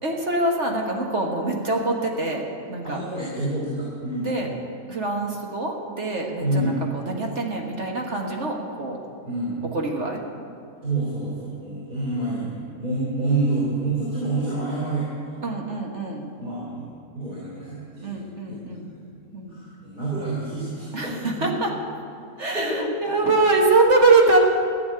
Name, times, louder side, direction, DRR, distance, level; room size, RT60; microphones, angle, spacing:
voice 1, 0.0-2.4 2.7-3.0 4.2-4.5 4.9-9.0 9.7-10.2 15.4-16.2 18.0-18.9 19.3-19.6 20.9-21.7 22.4-24.4, right 3 dB, 50° right, 0 dB, 1.7 m, -23 dB
voice 2, 2.8-4.3 6.4-6.8 9.2-9.6 10.8-15.4 16.4-18.6 19.5-21.5 22.5-22.8, right 2 dB, 30° right, -8 dB, 3.4 m, -28 dB
14.0 x 7.5 x 9.9 m, 2.5 s
omnidirectional pair, 1.6 m